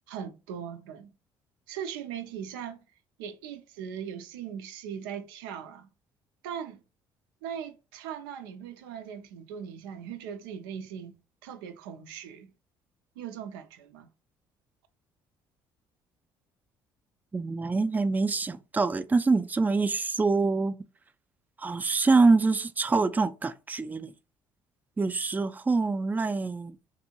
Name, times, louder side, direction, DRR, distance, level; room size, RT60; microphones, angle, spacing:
voice 1, 0.1-1.1 1.7-2.8 3.2-5.9 6.4-6.8 7.4-11.2 11.4-12.5 13.2-14.1, right 8 dB, 90° right, 0.4 m, -39 dB
voice 2, 17.3-20.8 21.6-24.1 25.0-26.8, right 3 dB, 15° right, 0.3 m, -25 dB
2.6 x 2.5 x 2.8 m
supercardioid pair, 65°, 11 cm